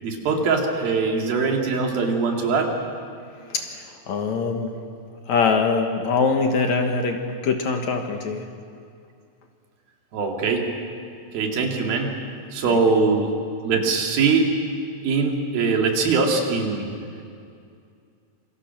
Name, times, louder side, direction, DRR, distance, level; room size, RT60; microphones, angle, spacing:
voice 1, 0.0-2.7 10.1-10.7 11.3-12.2 12.5-13.3 13.6-14.5 15.0-16.9, right 4 dB, 80° right, 1 dB, 4.3 m, -22 dB
voice 2, 3.5-4.8 5.3-8.5 12.6-12.8, left 4 dB, 60° left, 4 dB, 2.5 m, -23 dB
27.0 x 25.0 x 6.0 m, 2.4 s
omnidirectional pair, 4.2 m